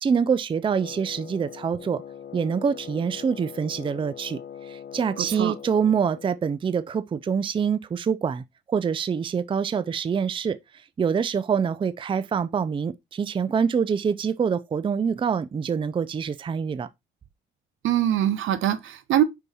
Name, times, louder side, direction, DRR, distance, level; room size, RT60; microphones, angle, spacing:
voice 1, 0.0-2.0 2.3-4.4 4.7-10.6 11.0-16.9, right 6 dB, 25° right, 0.4 m, -25 dB
Wind instrument woodwind instrument, 0.7-6.4, left 8 dB, 50° left, 1.0 m, -41 dB
voice 2, 5.2-5.5 17.8-19.2, right 11 dB, 75° right, 0.8 m, -23 dB
5.5 x 4.6 x 4.1 m
cardioid pair, 90°, 20 cm